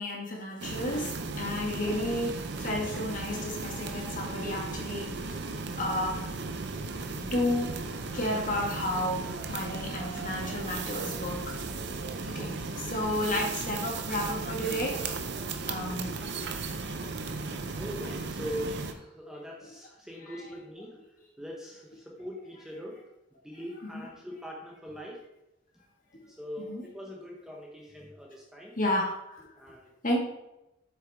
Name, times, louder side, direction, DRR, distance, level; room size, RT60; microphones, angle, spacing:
voice 1, 0.0-5.4 5.8-6.3 7.2-7.7 8.1-11.6 12.3-16.8 20.3-20.5 23.9-24.1 26.6-26.8 28.7-29.5 30.0-30.2, left 1 dB, 40° left, -1 dB, 1.6 m, -32 dB
sound 1, 0.6-18.9, right 3 dB, 55° right, 0.6 m, -36 dB
voice 2, 17.2-21.0 21.4-23.0 23.3-25.2 26.3-28.7 29.6-29.9, equal, 5° right, -2 dB, 0.8 m, -41 dB
7.6 x 6.1 x 3.5 m, 0.91 s
head